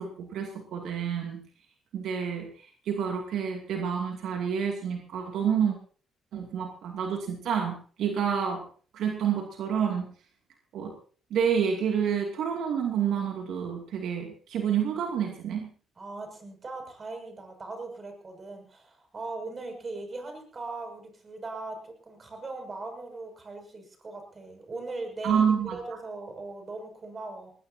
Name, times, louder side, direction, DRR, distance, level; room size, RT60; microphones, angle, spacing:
voice 1, 0.0-1.4 1.9-5.8 6.3-8.6 8.9-10.1 10.7-10.9 11.3-15.7 25.2-25.8, right 7 dB, 75° right, 1 dB, 2.6 m, -28 dB
voice 2, 16.0-25.4 25.7-27.5, right 3 dB, 35° right, 5 dB, 6.6 m, -39 dB
20.5 x 19.5 x 2.8 m, 0.43 s
cardioid pair, 90°, 0 cm